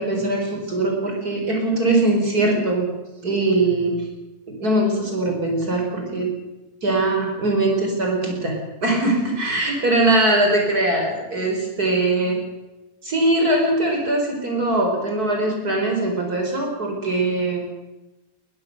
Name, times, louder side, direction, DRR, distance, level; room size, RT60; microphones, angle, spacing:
voice 1, 0.0-2.9 3.2-4.0 4.6-6.3 6.8-12.4 13.0-17.6, right 2 dB, 70° right, 1 dB, 5.2 m, -21 dB
22.0 x 21.0 x 6.7 m, 1.1 s
omnidirectional pair, 1.7 m